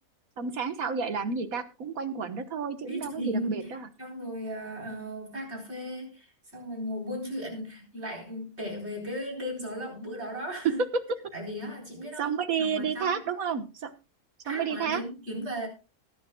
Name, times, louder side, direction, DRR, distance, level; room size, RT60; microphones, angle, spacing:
voice 1, 0.4-3.8 12.2-13.9 14.5-15.0, right 6 dB, 65° right, 9 dB, 1.7 m, -31 dB
voice 2, 2.8-3.7 4.0-10.8 11.3-13.2 14.4-15.7, equal, 45° right, 0 dB, 4.6 m, -36 dB
21.0 x 10.0 x 2.3 m, 0.30 s
omnidirectional pair, 1.6 m